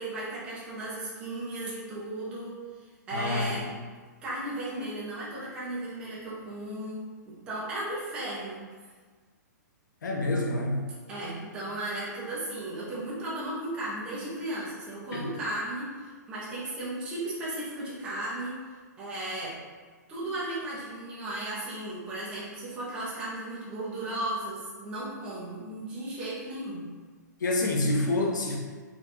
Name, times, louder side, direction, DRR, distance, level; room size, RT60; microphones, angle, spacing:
voice 1, 0.0-2.5 3.1-3.7 4.2-8.6 11.1-18.6 19.0-19.6 20.1-26.8, right 1 dB, 10° right, -8 dB, 0.7 m, -35 dB
voice 2, 3.1-3.6 10.0-10.8 15.1-15.3 27.4-28.6, left 2 dB, 90° left, 0 dB, 0.9 m, -27 dB
4.4 x 2.4 x 4.1 m, 1.5 s
hypercardioid pair, 180°, 10 cm